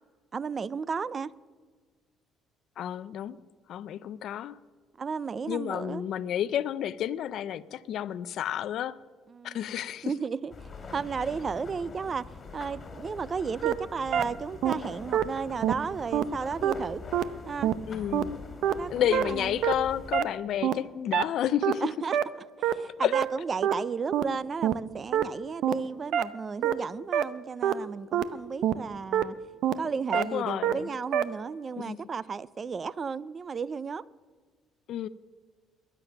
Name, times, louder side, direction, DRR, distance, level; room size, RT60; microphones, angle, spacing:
voice 1, 0.3-1.3 5.0-6.0 9.3-9.6 10.0-12.2 12.5-17.0 17.5-17.7 18.7-19.6 21.8-22.2 22.6-29.4 29.8-34.0, right 5 dB, 30° right, 0.4 m, -34 dB
voice 2, 2.8-3.4 3.7-4.6 5.5-9.0 9.4-10.1 17.9-18.3 18.9-21.9 23.0-23.1 30.1-30.9 31.8-32.0 34.9-35.1, left 10 dB, 60° left, 0.5 m, -30 dB
sound 1, 10.5-20.2, left 4 dB, 25° left, 2.4 m, -44 dB
sound 2, 13.6-13.7 14.1-14.2 14.6-14.7 15.1-15.2 15.6-15.7 16.1-16.2 16.6-16.7 17.1-17.2 17.6-17.7 18.1-18.2 18.6-18.7 19.1-19.2 19.6-19.7 20.1-20.2 20.6-20.7 21.1-21.2 21.6-21.7 22.1-22.2 22.6-22.7 23.1-23.2 23.6-23.7 24.1-24.2 24.6-24.7 25.1-25.2 25.6-25.7 26.1-26.2 26.6-26.7 27.1-27.2 27.6-27.7 28.1-28.2 28.6-28.7 29.1-29.2 29.6-29.7 30.1-30.2 30.6-30.7 31.1-31.2, right 11 dB, 65° right, 0.6 m, -24 dB
21.5 x 9.1 x 5.9 m
cardioid pair, 140°, 0 cm